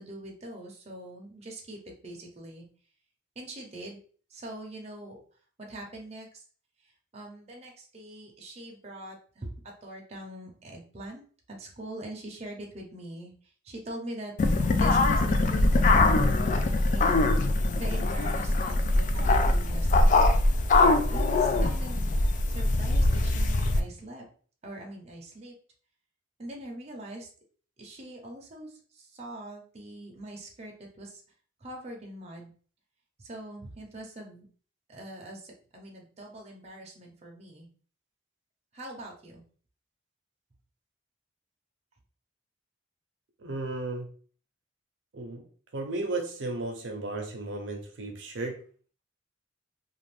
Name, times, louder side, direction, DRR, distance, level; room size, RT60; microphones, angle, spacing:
voice 1, 0.0-2.6 3.4-4.0 4.3-5.2 5.6-6.4 7.1-9.5 9.8-11.2 11.5-13.3 13.6-17.4 17.8-20.4 21.1-22.1 22.5-24.2 24.6-25.5 26.4-27.3 27.8-31.2 31.6-32.5 33.2-34.5 34.9-37.7 38.7-39.4, right 1 dB, 35° right, 0.7 m, -43 dB
sound 1, 14.4-23.8, left 2 dB, 45° left, 0.3 m, -23 dB
voice 2, 43.4-44.1 45.1-45.5 45.7-48.6, right 2 dB, 85° right, 0.6 m, -34 dB
2.5 x 2.4 x 3.3 m
head